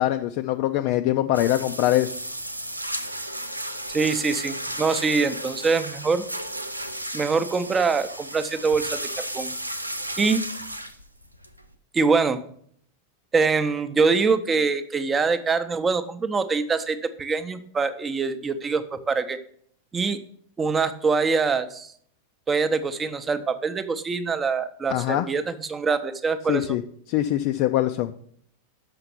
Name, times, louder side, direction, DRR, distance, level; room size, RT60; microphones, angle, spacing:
voice 1, 0.0-2.2 24.9-25.3 26.5-26.8 27.1-28.1, left 14 dB, 45° left, 6 dB, 0.4 m, -23 dB
sound 1, 1.3-11.7, right 1 dB, 85° right, 0.5 m, -34 dB
voice 2, 3.9-6.2 7.1-9.5 10.2-10.4 11.9-12.4 13.3-19.4 19.9-20.2 20.6-21.9 22.5-26.8, right 4 dB, 20° right, 11 dB, 0.7 m, -24 dB
6.7 x 5.8 x 5.8 m, 0.63 s
figure-of-eight pair, 90°, 0 cm